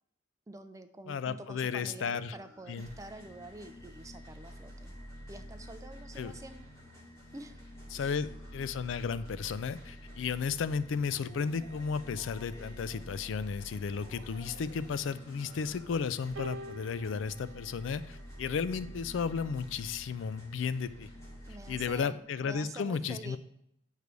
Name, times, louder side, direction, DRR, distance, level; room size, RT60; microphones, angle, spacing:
voice 1, 0.5-4.9 5.3-6.7 7.3-7.6 8.0-8.2 21.5-23.4, right 2 dB, 15° right, 9 dB, 0.4 m, -47 dB
voice 2, 1.1-2.3 2.7-2.9 6.2-6.3 7.9-21.1 21.7-23.4, left 6 dB, 75° left, 15 dB, 0.3 m, -34 dB
sound 1, 2.1-21.9, equal, 15° left, 2.0 m, -49 dB
sound 2, 16.4-18.8 19.8-20.0, right 2 dB, 85° right, 0.5 m, -47 dB
8.1 x 3.2 x 5.1 m, 0.76 s
head